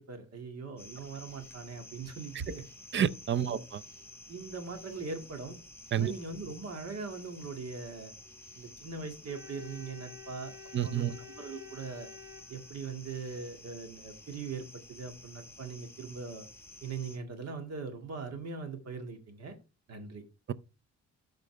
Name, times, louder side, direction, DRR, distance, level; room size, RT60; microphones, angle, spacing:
voice 1, 0.0-2.6 3.4-3.6 4.3-5.6 5.9-8.1 8.5-10.5 10.8-12.1 12.5-16.5 16.8-19.6 19.9-20.2, right 4 dB, 55° right, 2.1 m, -41 dB
sound 1, 0.8-17.2, left 2 dB, 10° left, 3.7 m, -52 dB
voice 2, 2.9-3.8 5.9-6.1 10.7-11.1, right 9 dB, 40° right, 0.6 m, -29 dB
Organ, 9.3-13.2, left 6 dB, 10° right, 1.3 m, -51 dB
12.5 x 5.3 x 3.3 m
cardioid pair, 90°, 30 cm